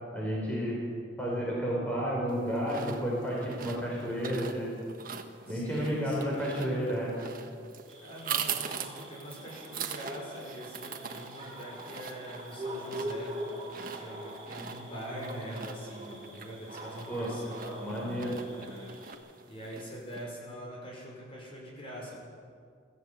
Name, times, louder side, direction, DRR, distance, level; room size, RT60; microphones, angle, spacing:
voice 1, 0.1-0.8 1.2-4.7 5.5-7.1 17.1-17.3 17.8-18.4, equal, 10° left, -5 dB, 5.0 m, -31 dB
sound 1, 2.3-20.2, right 7 dB, 50° right, 1.4 m, -42 dB
voice 2, 5.5-6.5 8.0-13.3 13.8-18.9 19.5-22.2, equal, 30° left, -3 dB, 5.8 m, -43 dB
sound 2, 7.9-19.1, equal, 30° right, 7.4 m, -43 dB
22.0 x 15.0 x 8.6 m, 2.2 s
head